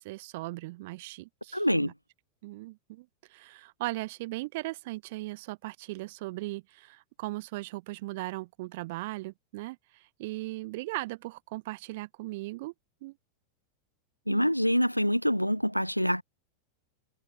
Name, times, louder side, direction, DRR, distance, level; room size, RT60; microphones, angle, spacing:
voice 1, 0.0-1.9 2.4-12.7 13.0-13.1 14.3-14.5, right 21 dB, 50° right, 6.3 m, -38 dB
voice 2, 1.5-1.9 14.3-16.2, equal, 90° left, 1.7 m, -25 dB
figure-of-eight pair, 90°, 0 cm